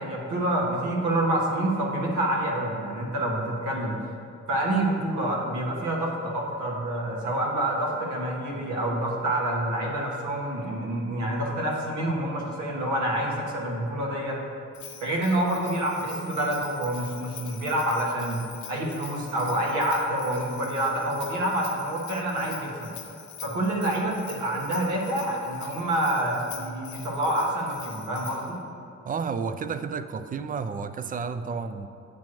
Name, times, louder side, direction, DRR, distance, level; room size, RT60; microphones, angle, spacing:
voice 1, 0.0-4.0 4.5-14.4 15.0-18.4 18.7-22.9 23.4-28.6, right 1 dB, 75° right, -2 dB, 1.4 m, -27 dB
Bell, 14.7-28.6, left 9 dB, 75° left, 0.8 m, -45 dB
voice 2, 29.0-31.9, right 5 dB, 30° right, 10 dB, 0.3 m, -31 dB
8.3 x 3.0 x 6.3 m, 2.7 s
cardioid pair, 90°, 30 cm